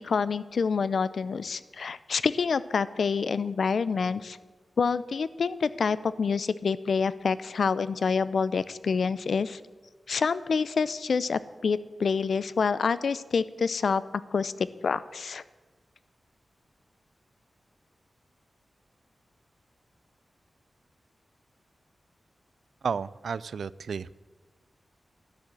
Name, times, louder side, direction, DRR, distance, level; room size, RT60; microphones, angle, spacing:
voice 1, 0.0-4.4 4.8-9.6 10.1-14.0 14.3-15.4, left 5 dB, 70° left, 17 dB, 0.5 m, -27 dB
voice 2, 22.8-24.1, right 6 dB, 90° right, 20 dB, 0.3 m, -32 dB
12.0 x 9.8 x 7.5 m, 1.3 s
wide cardioid pair, 135°, 0 cm